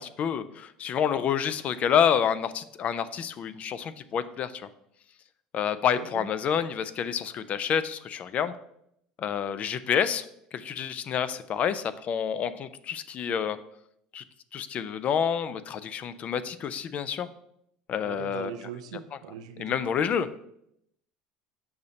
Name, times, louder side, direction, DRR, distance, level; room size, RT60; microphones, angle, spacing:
voice 1, 0.0-4.7 5.5-8.5 9.2-10.3 10.5-13.6 14.1-14.2 14.5-17.3 17.9-18.5 19.6-20.4, left 8 dB, 45° left, 14 dB, 0.4 m, -28 dB
voice 2, 18.0-19.9, right 9 dB, 85° right, 8 dB, 0.5 m, -40 dB
6.7 x 2.8 x 5.2 m, 0.76 s
hypercardioid pair, 80°, 3 cm